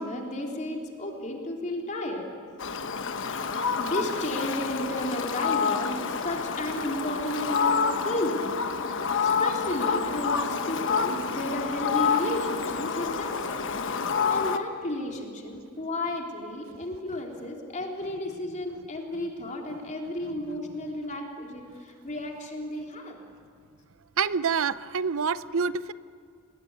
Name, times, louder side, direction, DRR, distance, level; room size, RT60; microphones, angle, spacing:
voice 1, 0.0-2.3 3.8-8.5 8.9-13.7 14.3-23.2, left 1 dB, 35° left, 1 dB, 3.3 m, -33 dB
Fowl, 2.6-14.6, left 5 dB, 60° left, 1.3 m, -28 dB
voice 2, 24.2-25.9, right 6 dB, 65° right, 16 dB, 0.7 m, -27 dB
29.5 x 20.5 x 9.5 m, 2.2 s
head